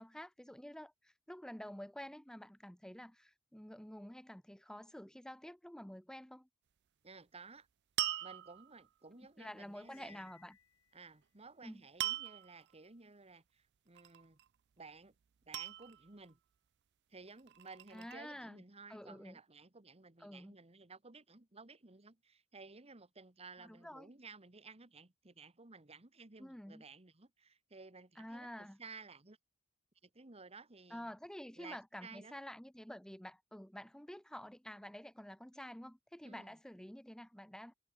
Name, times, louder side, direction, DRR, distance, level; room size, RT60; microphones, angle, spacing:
voice 1, 0.0-6.5 9.2-10.6 11.6-11.8 17.9-18.6 18.9-19.4 20.2-20.5 23.6-24.1 26.4-26.8 28.2-28.8 30.9-37.7, equal, 5° left, 0.7 m, -49 dB
voice 2, 7.0-7.7 8.2-10.3 10.9-14.4 14.8-15.1 15.4-16.4 17.1-29.4 30.0-31.1 31.6-32.4 36.2-36.6, right 4 dB, 30° right, 1.6 m, -55 dB
sound 1, 8.0-8.9 12.0-12.6 14.0-14.5 15.5-16.3 17.3-18.2, right 14 dB, 55° right, 0.4 m, -40 dB
Cymbal, 9.8-11.2, left 8 dB, 80° left, 2.9 m, -65 dB
head